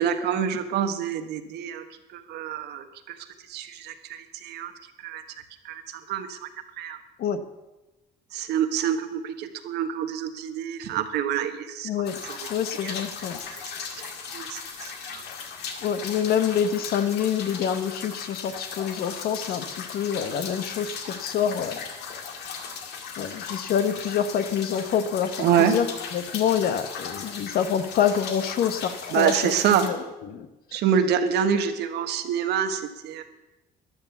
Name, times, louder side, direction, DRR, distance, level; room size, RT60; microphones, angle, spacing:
voice 1, 0.0-1.8 2.1-3.2 3.5-4.7 5.0-5.2 5.6-6.5 6.8-7.0 8.3-11.9 12.2-12.4 12.8-12.9 13.5-15.2 25.4-25.8 29.1-29.9 30.7-33.2, right 8 dB, 75° right, 8 dB, 1.4 m, -26 dB
voice 2, 11.8-12.2 12.5-13.4 15.8-21.8 23.2-25.9 26.1-30.0 30.3-30.5, left 8 dB, 65° left, 11 dB, 1.2 m, -26 dB
sound 1, 12.0-29.9, left 6 dB, 80° left, 2.1 m, -37 dB
13.0 x 11.0 x 7.2 m, 1.0 s
cardioid pair, 110°, 17 cm